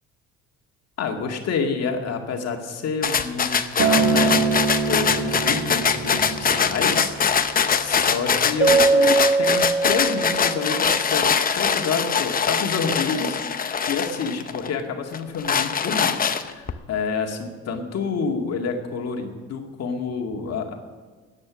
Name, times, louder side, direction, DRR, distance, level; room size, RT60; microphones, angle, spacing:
voice 1, 1.0-16.1 16.4-20.7, left 5 dB, 60° left, 3 dB, 2.1 m, -28 dB
sound 1, 3.0-14.7 15.1-16.7, left 6 dB, 30° left, 0.8 m, -23 dB
Acoustic guitar, 3.8-8.1 8.9-9.0, right 5 dB, 70° right, 1.9 m, -25 dB
Keyboard (musical), 8.6-11.0, right 3 dB, 25° right, 0.8 m, -21 dB
16.5 x 9.7 x 6.3 m, 1.4 s
cardioid pair, 110°, 29 cm